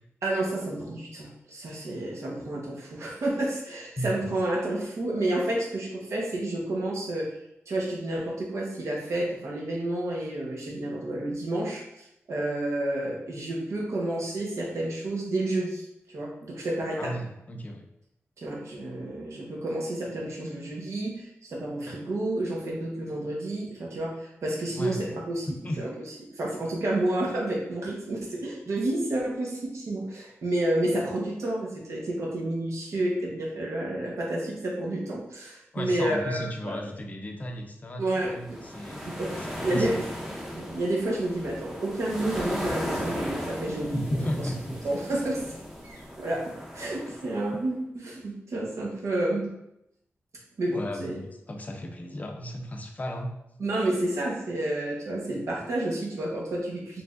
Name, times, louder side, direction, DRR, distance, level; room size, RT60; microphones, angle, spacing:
voice 1, 0.2-7.3 7.7-17.1 18.4-25.5 25.8-25.9 26.3-36.8 38.0-38.6 39.1-40.0 40.5-44.2 44.8-45.5 45.8-49.5 50.6-51.2 53.6-57.0, right 1 dB, 80° right, -3 dB, 1.0 m, -30 dB
voice 2, 17.0-17.9 24.7-25.2 25.6-25.8 35.7-40.0 43.9-44.8 47.1-47.2 50.7-53.3, equal, 30° left, 4 dB, 0.5 m, -34 dB
sound 1, 38.3-47.6, equal, 10° right, 0.6 m, -36 dB
4.5 x 3.4 x 2.5 m, 0.82 s
wide cardioid pair, 165°, 5 cm